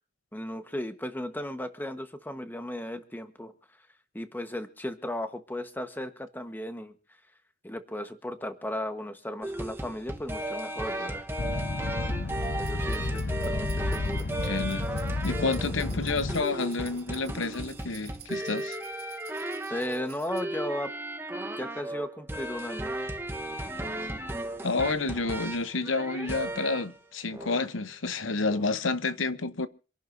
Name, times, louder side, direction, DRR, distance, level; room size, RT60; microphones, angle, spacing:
voice 1, 0.3-3.5 4.1-6.9 7.6-11.3 12.6-14.3 19.7-20.9 21.6-22.9 28.5-28.7, left 1 dB, 10° left, 1.3 m, -36 dB
sound 1, 9.4-27.0 27.3-27.6, right 1 dB, 10° right, 1.1 m, -35 dB
sound 2, 11.4-16.4, left 2 dB, 50° left, 0.7 m, -32 dB
sound 3, 12.4-20.4, right 11 dB, 55° right, 2.4 m, -52 dB
voice 2, 14.4-14.9 15.2-18.8 24.6-29.7, left 3 dB, 80° left, 0.9 m, -29 dB
27.0 x 11.5 x 2.7 m
head